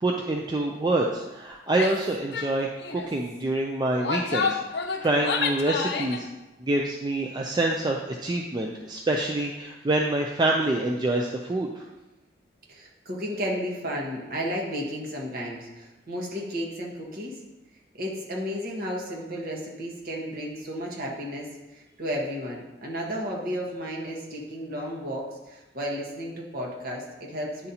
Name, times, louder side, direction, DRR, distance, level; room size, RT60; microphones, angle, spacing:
voice 1, 0.0-6.3 6.6-11.8, right 2 dB, 25° right, 0 dB, 0.4 m, -26 dB
Female speech woman speaking / Yell, 1.7-2.0 2.3-2.5 2.8-3.1 3.8-6.2, left 5 dB, 60° left, 0.6 m, -29 dB
voice 2, 12.7-17.4 17.9-27.7, equal, 50° right, -1 dB, 1.3 m, -33 dB
9.7 x 4.0 x 2.8 m, 1.1 s
head